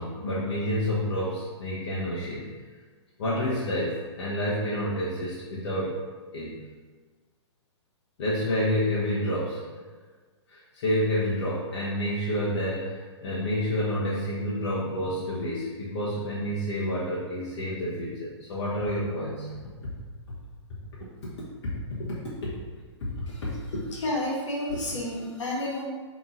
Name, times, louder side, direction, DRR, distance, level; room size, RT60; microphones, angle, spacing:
voice 1, 0.0-2.5 3.2-6.0 6.3-6.6 8.2-9.6 10.5-19.5 21.2-21.3 21.6-22.5 23.0-23.9, left 1 dB, 60° left, -7 dB, 0.9 m, -29 dB
voice 2, 23.9-25.8, left 1 dB, 75° left, -3 dB, 1.3 m, -30 dB
5.4 x 3.0 x 2.6 m, 1.4 s
hypercardioid pair, 130°, 15 cm